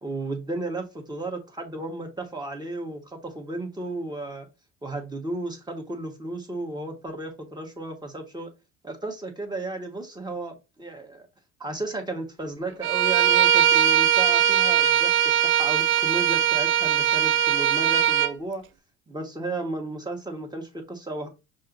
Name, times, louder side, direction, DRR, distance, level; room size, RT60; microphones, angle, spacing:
voice 1, 0.0-4.5 4.8-8.5 8.8-11.2 11.6-18.6 19.1-21.3, right 2 dB, 15° right, 1.6 m, -34 dB
Bowed string instrument, 12.8-18.3, right 10 dB, 40° right, 0.4 m, -20 dB
5.4 x 2.9 x 2.6 m
supercardioid pair, 80°, 33 cm